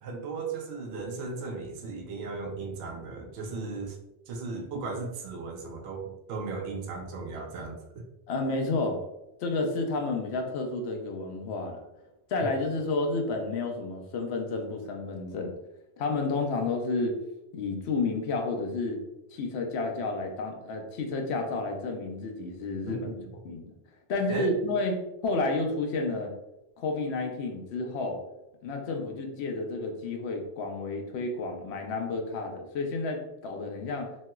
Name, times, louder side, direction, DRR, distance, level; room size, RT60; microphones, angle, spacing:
voice 1, 0.0-4.0 4.3-8.0 22.9-23.3 24.3-24.5, right 4 dB, 75° right, 1 dB, 0.8 m, -36 dB
voice 2, 8.3-9.0 9.4-11.8 12.3-15.5 16.0-17.1 17.5-19.0 19.3-23.1 23.4-23.7 24.1-26.3 26.8-28.2 28.6-34.1, left 3 dB, 80° left, 3 dB, 0.8 m, -31 dB
3.1 x 2.8 x 2.2 m, 0.91 s
omnidirectional pair, 1.1 m